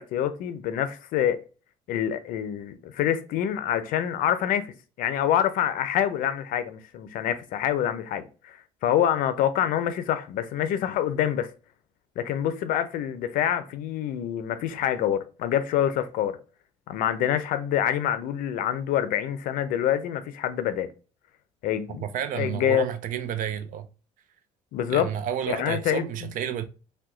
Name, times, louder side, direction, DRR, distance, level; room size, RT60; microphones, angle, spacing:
voice 1, 0.0-1.4 1.9-11.5 12.2-16.4 16.9-20.9 21.6-22.0 22.3-22.9 24.7-25.1 25.5-26.3, left 10 dB, 70° left, 0.5 m, -26 dB
voice 2, 21.9-23.9 24.9-26.6, right 9 dB, 65° right, 0.5 m, -31 dB
2.8 x 2.2 x 3.6 m
supercardioid pair, 80°, 15 cm